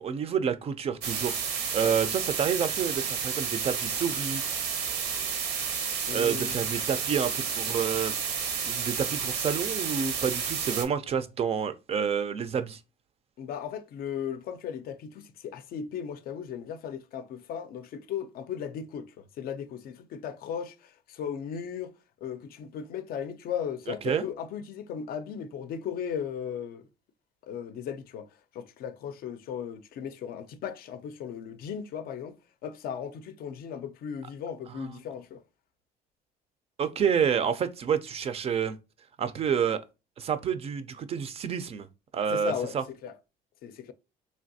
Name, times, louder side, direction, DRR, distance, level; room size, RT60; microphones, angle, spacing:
voice 1, 0.0-1.4 1.7-4.4 6.1-8.1 8.6-12.8 24.0-24.2 34.7-34.9 36.8-38.8 39.2-39.8 40.2-41.9 42.1-42.8, right 7 dB, 35° right, 0.3 m, -29 dB
sound 1, 1.0-10.8, right 6 dB, 75° right, 0.7 m, -31 dB
voice 2, 6.1-6.6 13.4-21.9 22.2-26.9 27.5-28.3 28.5-35.4 42.3-42.8 43.0-43.2 43.6-43.9, left 8 dB, 60° left, 0.4 m, -36 dB
3.3 x 2.6 x 2.6 m
cardioid pair, 110°, 17 cm